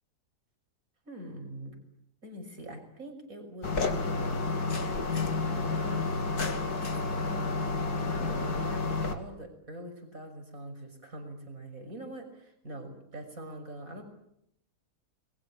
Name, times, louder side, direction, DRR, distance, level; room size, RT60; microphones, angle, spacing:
voice 1, 1.0-1.8 2.2-4.6 5.8-6.4 6.8-7.7 8.1-14.0, right 1 dB, 55° right, 6 dB, 6.4 m, -44 dB
sound 1, 3.6-9.1, left 3 dB, 65° left, 2.9 m, -30 dB
29.5 x 21.5 x 8.7 m, 0.78 s
omnidirectional pair, 1.8 m